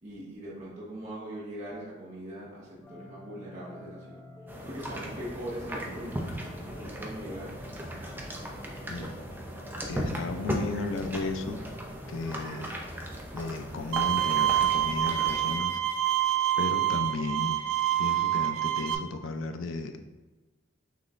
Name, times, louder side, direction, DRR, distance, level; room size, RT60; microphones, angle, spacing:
voice 1, 0.0-4.2 4.6-6.2 6.7-7.6, right 1 dB, 35° right, -7 dB, 0.9 m, -41 dB
sound 1, 2.8-12.5, left 1 dB, 10° left, 0.8 m, -48 dB
sound 2, 4.5-15.6, equal, 10° right, 0.4 m, -37 dB
voice 2, 9.9-11.6 12.1-12.8 13.3-15.8 16.6-17.6 18.0-20.0, left 3 dB, 80° left, 7 dB, 0.4 m, -34 dB
Bowed string instrument, 13.9-18.9, right 12 dB, 85° right, 0.3 m, -26 dB
5.7 x 3.1 x 2.4 m, 1.2 s
head